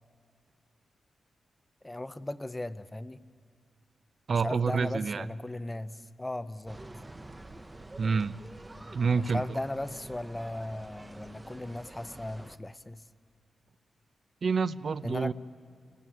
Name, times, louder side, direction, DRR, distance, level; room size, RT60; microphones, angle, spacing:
voice 1, 1.8-3.2 4.3-6.8 9.2-13.0 15.0-15.3, left 1 dB, 15° left, 13 dB, 0.7 m, -37 dB
voice 2, 4.3-5.3 8.0-8.4 8.9-9.4 14.4-15.3, right 5 dB, 50° right, 15 dB, 0.6 m, -28 dB
sound 1, 6.7-12.6, right 2 dB, 15° right, 1.0 m, -47 dB
28.0 x 18.5 x 9.3 m, 2.3 s
wide cardioid pair, 115°, 0 cm